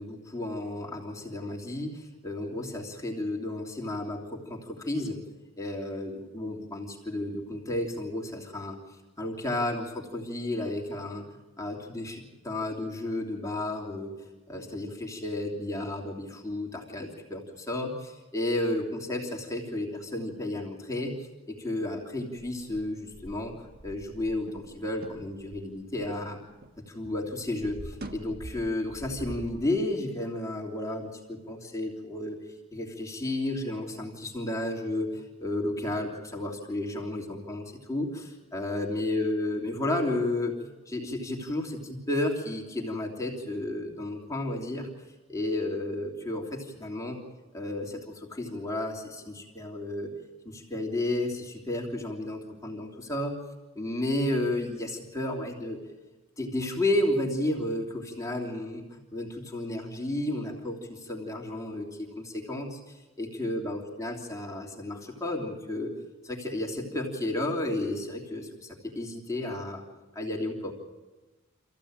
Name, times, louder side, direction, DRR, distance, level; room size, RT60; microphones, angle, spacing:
voice 1, 0.0-5.2 5.6-8.8 9.2-11.2 11.6-14.1 14.5-21.2 21.5-23.5 23.8-26.4 26.9-32.4 32.7-44.9 45.3-47.2 47.5-50.1 50.4-53.4 53.7-55.8 56.4-62.8 63.2-65.9 66.2-69.8 70.1-70.7, left 1 dB, 15° left, -1 dB, 3.2 m, -32 dB
sound 1, 22.4-26.8 27.0-29.6, right 1 dB, 50° right, 1.5 m, -45 dB
26.5 x 15.5 x 8.8 m, 1.2 s
head